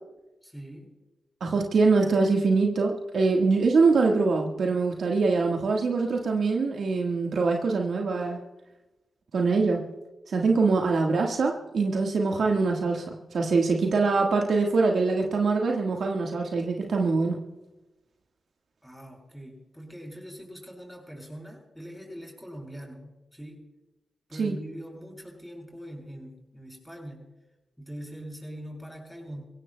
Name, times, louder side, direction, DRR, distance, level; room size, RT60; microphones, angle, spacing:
voice 1, 0.4-0.9 18.8-23.7 24.3-27.3 27.8-29.4, equal, ahead, 0 dB, 7.0 m, -42 dB
voice 2, 1.4-8.4 9.3-9.8 10.3-17.4 24.4-24.5, right 4 dB, 70° right, 1 dB, 1.5 m, -24 dB
28.0 x 16.5 x 2.2 m, 1.0 s
supercardioid pair, 40°, 0 cm